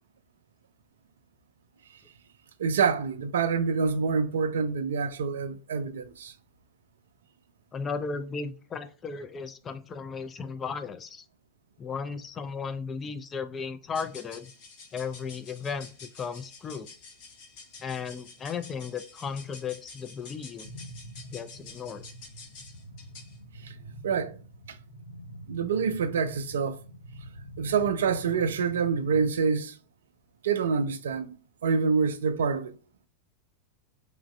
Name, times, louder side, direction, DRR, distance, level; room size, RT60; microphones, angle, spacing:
voice 1, 2.6-6.3 23.6-23.8 24.0-24.4 24.7-24.8 25.5-26.8 27.6-29.8 30.4-31.4 31.6-32.7, right 5 dB, 65° right, 0.3 m, -26 dB
voice 2, 7.7-11.2 11.8-14.5 14.9-16.9 17.8-20.7 21.3-22.1, left 5 dB, 20° left, 0.3 m, -35 dB
sound 1, 13.9-23.4, left 4 dB, 45° left, 0.9 m, -49 dB
sound 2, 20.6-29.3, equal, 75° left, 0.7 m, -46 dB
3.0 x 2.5 x 2.3 m
figure-of-eight pair, 90°, 0 cm